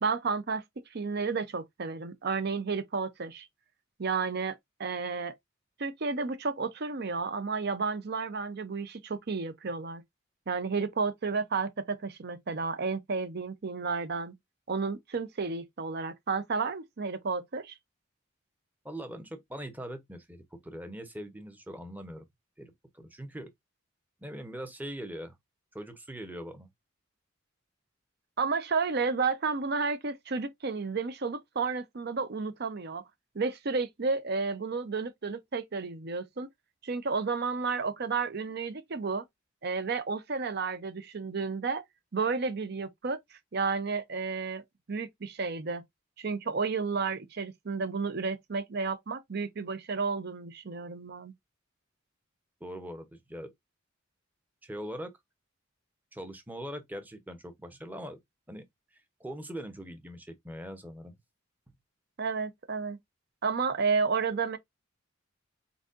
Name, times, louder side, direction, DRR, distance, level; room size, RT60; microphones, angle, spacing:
voice 1, 0.0-0.6 0.9-3.5 4.0-5.3 5.8-10.0 10.5-14.3 14.7-17.7 28.4-33.0 33.3-36.5 36.8-39.3 39.6-41.8 42.1-44.6 44.9-45.8 46.2-51.3 62.2-63.0 63.4-64.6, right 4 dB, 50° right, 0.6 m, -32 dB
voice 2, 18.8-22.2 22.6-23.5 24.2-25.4 25.7-26.7 52.6-53.5 54.6-55.1 56.1-58.2 58.5-58.7 58.9-61.2, equal, 10° right, 0.8 m, -41 dB
4.6 x 4.0 x 2.5 m
head